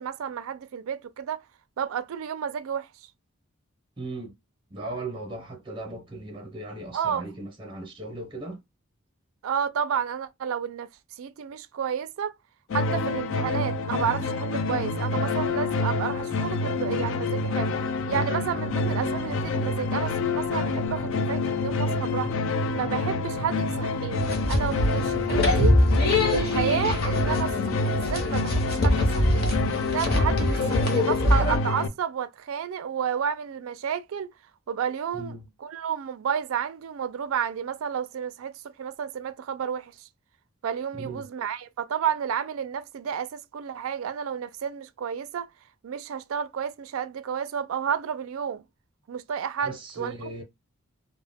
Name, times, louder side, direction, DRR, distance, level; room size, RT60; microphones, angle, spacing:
voice 1, 0.0-1.4 1.8-3.1 6.9-7.2 9.4-12.3 12.7-17.7 18.1-22.3 22.7-25.7 26.3-27.5 27.8-29.5 29.9-34.3 34.7-40.1 40.6-45.5 45.8-48.6 49.1-50.1, right 8 dB, 75° right, 0.3 m, -31 dB
voice 2, 4.0-4.3 4.7-8.6 25.1-25.6 35.1-35.5 41.0-41.3 49.6-50.4, right 2 dB, 25° right, 0.6 m, -37 dB
sound 1, 12.7-31.9, left 3 dB, 65° left, 0.3 m, -27 dB
sound 2, 18.1-26.6, right 2 dB, 80° left, 0.9 m, -41 dB
sound 3, 24.2-31.6, left 1 dB, 45° left, 0.7 m, -24 dB
2.1 x 2.0 x 3.4 m
head